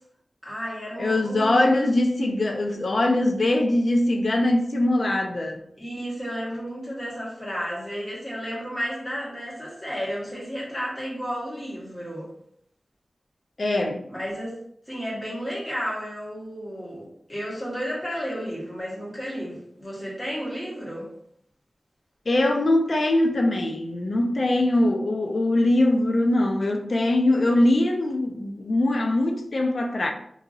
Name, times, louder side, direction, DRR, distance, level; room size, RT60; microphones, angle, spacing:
voice 1, 0.4-1.9 5.8-12.3 14.1-14.5 14.9-21.1, equal, 20° left, 1.5 m, -32 dB
voice 2, 1.0-5.6 13.6-14.0 22.3-30.1, left 1 dB, 60° left, 0.4 m, -22 dB
2.8 x 2.6 x 2.7 m
wide cardioid pair, 75°, 0 cm